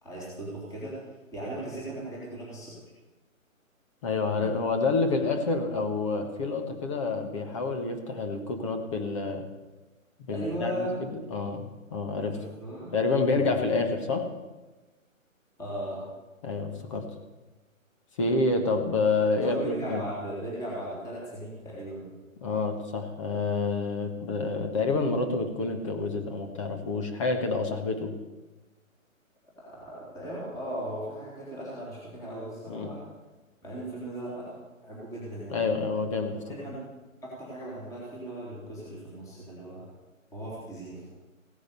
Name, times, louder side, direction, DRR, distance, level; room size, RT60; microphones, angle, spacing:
voice 1, 0.0-2.7 4.3-4.6 10.3-10.9 12.3-12.9 13.3-13.6 15.6-16.0 19.4-22.1 29.6-33.0 33.6-34.6 34.8-35.6 36.5-36.8 37.2-39.8 40.3-41.0, right 1 dB, 10° left, -6 dB, 3.2 m, -37 dB
voice 2, 4.0-9.5 10.2-12.4 12.9-14.3 16.4-17.1 18.2-20.0 22.4-28.1 32.7-32.9 35.5-36.7, left 3 dB, 25° left, 5 dB, 1.4 m, -28 dB
16.0 x 10.0 x 6.9 m, 1.2 s
hypercardioid pair, 160°, 41 cm